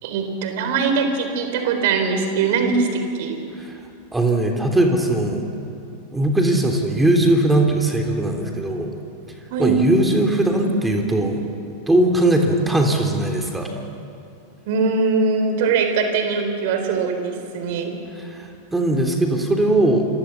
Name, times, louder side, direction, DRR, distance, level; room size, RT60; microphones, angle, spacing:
voice 1, 0.0-3.4 9.5-9.8 14.7-18.0, right 4 dB, 50° right, 6 dB, 3.9 m, -21 dB
voice 2, 4.1-5.4 6.1-8.9 9.6-11.4 11.9-13.7 18.2-20.0, right 1 dB, 10° right, 3 dB, 3.2 m, -19 dB
28.5 x 24.0 x 7.2 m, 2.6 s
figure-of-eight pair, 90°, 0 cm